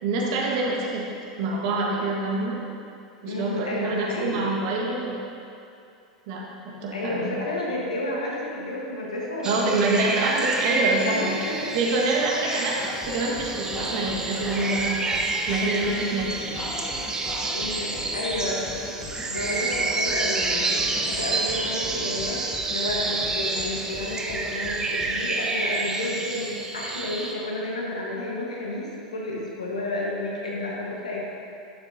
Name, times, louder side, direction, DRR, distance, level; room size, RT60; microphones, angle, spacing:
voice 1, 0.0-1.1 1.4-2.6 3.2-5.2 6.3-7.3 9.4-11.4 11.7-15.0 15.5-16.6, right 2 dB, 60° right, -2 dB, 1.6 m, -26 dB
voice 2, 3.2-4.5 6.9-9.8 11.0-11.8 12.4-12.8 17.5-18.7 19.3-31.2, left 1 dB, 85° left, -3 dB, 1.4 m, -31 dB
sound 1, 9.4-27.3, right 3 dB, 20° right, 0.8 m, -29 dB
sound 2, 12.8-25.3, left 2 dB, 25° left, 1.3 m, -39 dB
11.0 x 7.4 x 2.8 m, 2.6 s
hypercardioid pair, 90°, 4 cm